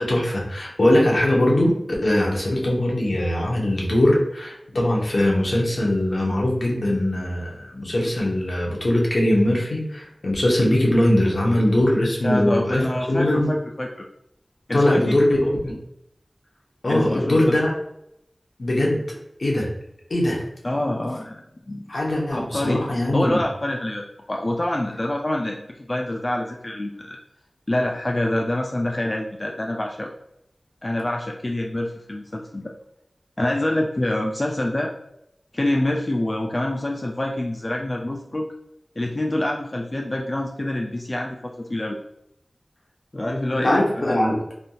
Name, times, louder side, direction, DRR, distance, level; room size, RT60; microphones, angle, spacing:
voice 1, 0.0-1.7 2.0-12.8 13.1-13.5 14.7-15.7 16.8-17.7 18.6-19.0 19.4-19.7 20.1-20.4 21.9-23.4 43.6-44.4, left 1 dB, 70° left, -3 dB, 0.9 m, -21 dB
voice 2, 12.2-14.1 14.7-15.2 16.9-17.6 20.6-21.9 22.3-22.9 23.1-27.2 27.7-30.1 30.8-32.7 33.4-34.9 35.5-38.5 39.0-42.0 43.1-44.2, left 1 dB, 40° left, 0 dB, 0.3 m, -26 dB
3.3 x 2.6 x 2.3 m, 0.79 s
wide cardioid pair, 55°, 0 cm